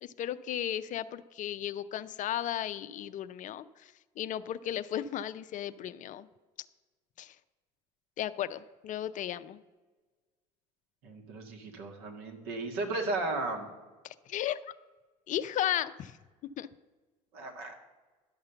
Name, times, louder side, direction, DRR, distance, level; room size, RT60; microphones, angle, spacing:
voice 1, 0.0-6.3 7.2-7.4 8.2-9.6 14.0-14.7 15.3-16.2 16.6-16.7, left 11 dB, 45° left, 13 dB, 0.5 m, -35 dB
voice 2, 11.0-13.7 17.3-17.7, right 2 dB, 65° right, 3 dB, 1.8 m, -35 dB
11.5 x 5.6 x 6.8 m, 1.3 s
hypercardioid pair, 70°, 17 cm